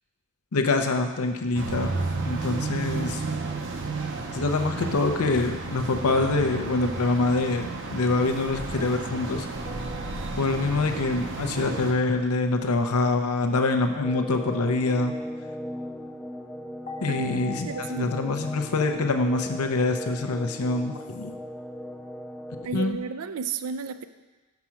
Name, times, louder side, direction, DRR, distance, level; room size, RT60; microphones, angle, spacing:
voice 1, 0.5-3.2 4.3-9.5 10.4-15.1 17.0-21.4 22.7-23.0, left 3 dB, 80° left, 5 dB, 0.7 m, -25 dB
sound 1, 1.5-11.9, right 3 dB, 55° right, 0.7 m, -32 dB
sound 2, 9.6-11.2 16.9-20.2, left 4 dB, 35° left, 0.8 m, -43 dB
sound 3, 14.0-22.7, equal, 5° left, 0.3 m, -38 dB
voice 2, 17.1-18.3 22.6-24.0, right 5 dB, 80° right, 11 dB, 0.4 m, -33 dB
6.2 x 5.9 x 5.8 m, 1.2 s
head